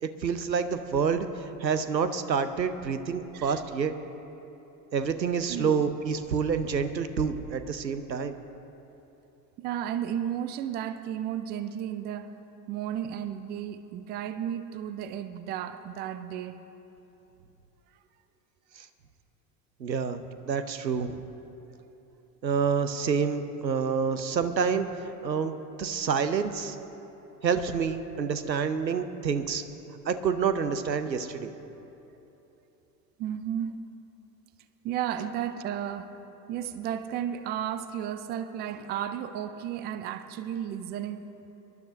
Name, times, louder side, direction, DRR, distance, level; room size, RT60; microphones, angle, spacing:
voice 1, 0.0-3.9 4.9-8.4 18.7-18.9 19.8-21.2 22.4-24.9 25.2-26.8 27.4-29.6 30.0-31.5, right 6 dB, 85° right, 10 dB, 0.8 m, -28 dB
voice 2, 3.3-3.6 5.5-5.7 9.6-12.3 12.7-16.6 22.1-22.2 25.4-25.5 33.2-33.8 34.8-36.2 36.5-41.3, right 10 dB, 20° right, 12 dB, 0.4 m, -33 dB
24.5 x 12.0 x 2.7 m, 3.0 s
figure-of-eight pair, 75°, 50 cm